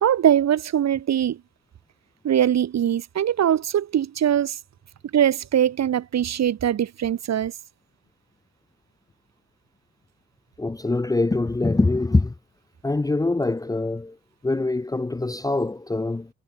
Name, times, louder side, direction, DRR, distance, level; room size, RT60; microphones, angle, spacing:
voice 1, 0.0-1.4 2.2-4.6 5.1-7.5, right 10 dB, 60° right, 3.1 m, -21 dB
voice 2, 10.6-12.3 12.8-14.2 14.4-16.3, left 2 dB, 10° left, 0.7 m, -23 dB
cardioid pair, 90°, 30 cm